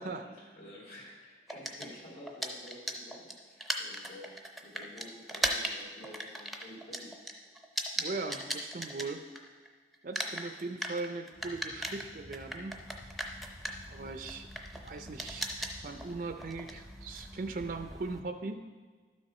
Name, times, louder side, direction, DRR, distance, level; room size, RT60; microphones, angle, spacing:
voice 1, 0.0-7.2, left 1 dB, 65° left, -8 dB, 2.0 m, -50 dB
sound 1, 1.5-9.7 9.9-18.2, right 1 dB, ahead, 0.6 m, -38 dB
voice 2, 8.0-9.2 10.0-12.8 13.9-14.5 14.8-18.6, right 3 dB, 50° right, 7 dB, 0.5 m, -39 dB
sound 2, 11.3-18.2, left 1 dB, 80° left, 2.0 m, -52 dB
12.0 x 6.4 x 4.2 m, 1.5 s
head